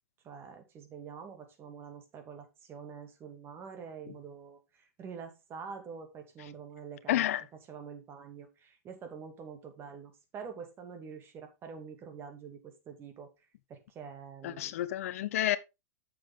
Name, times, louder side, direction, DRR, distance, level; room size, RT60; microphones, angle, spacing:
voice 1, 0.2-4.6 5.0-7.3 7.7-13.3 13.7-14.7, right 6 dB, 30° right, 2.5 m, -46 dB
voice 2, 7.1-7.4 14.4-15.6, left 13 dB, 60° left, 0.7 m, -30 dB
8.8 x 7.0 x 3.7 m
hypercardioid pair, 125°, 8 cm